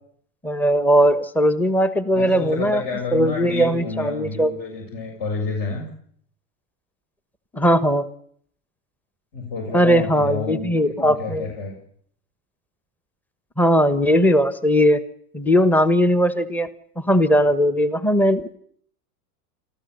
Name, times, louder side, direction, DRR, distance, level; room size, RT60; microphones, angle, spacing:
voice 1, 0.4-2.8 3.1-4.6 7.5-8.1 9.7-11.5 13.6-15.0 15.3-16.7 17.0-18.6, equal, 5° left, 13 dB, 1.2 m, -19 dB
voice 2, 2.1-5.8 9.3-10.7 11.0-11.7, left 4 dB, 50° left, 1 dB, 7.3 m, -29 dB
25.5 x 14.5 x 8.0 m, 0.63 s
hypercardioid pair, 105°, 47 cm